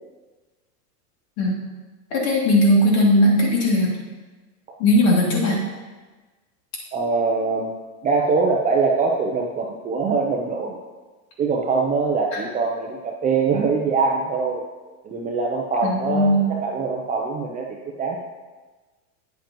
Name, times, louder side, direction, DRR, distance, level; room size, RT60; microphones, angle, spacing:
voice 1, 2.1-3.9 4.8-5.6 12.3-12.4 15.8-16.5, left 1 dB, 55° left, -2 dB, 2.7 m, -18 dB
voice 2, 6.9-7.7 8.0-10.8 11.4-14.6 15.0-17.7 18.0-18.2, right 4 dB, 15° right, 0 dB, 0.5 m, -23 dB
9.1 x 7.4 x 3.0 m, 1.3 s
supercardioid pair, 130°, 46 cm